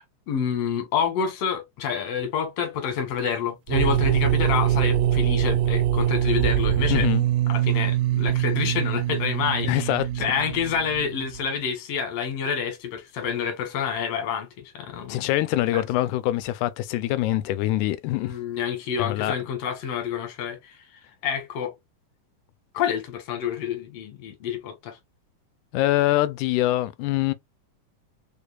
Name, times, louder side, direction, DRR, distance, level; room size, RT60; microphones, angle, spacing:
voice 1, 0.0-7.1 7.5-10.0 10.2-14.5 14.7-15.3 15.7-15.9 18.2-20.8 21.2-21.7 22.7-25.0, left 7 dB, 60° left, 2.0 m, -28 dB
sound 1, 3.7-11.4, right 11 dB, 80° right, 1.7 m, -23 dB
voice 2, 6.9-7.2 9.6-10.3 15.1-18.4 19.0-19.3 25.7-27.3, left 15 dB, 80° left, 1.9 m, -24 dB
4.5 x 3.4 x 2.3 m
omnidirectional pair, 3.7 m